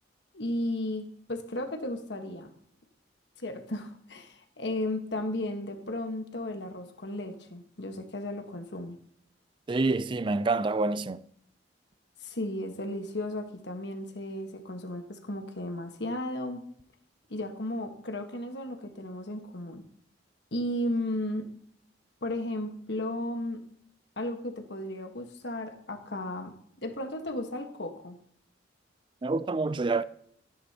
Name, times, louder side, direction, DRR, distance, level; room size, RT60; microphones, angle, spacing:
voice 1, 0.3-2.5 3.4-9.0 12.2-16.7 17.3-19.8 20.5-21.5 22.2-23.6 24.2-28.2, left 1 dB, 65° left, 1.4 m, -34 dB
voice 2, 9.7-11.2 29.2-30.0, right 3 dB, 25° right, 0.4 m, -27 dB
14.0 x 10.5 x 2.9 m
head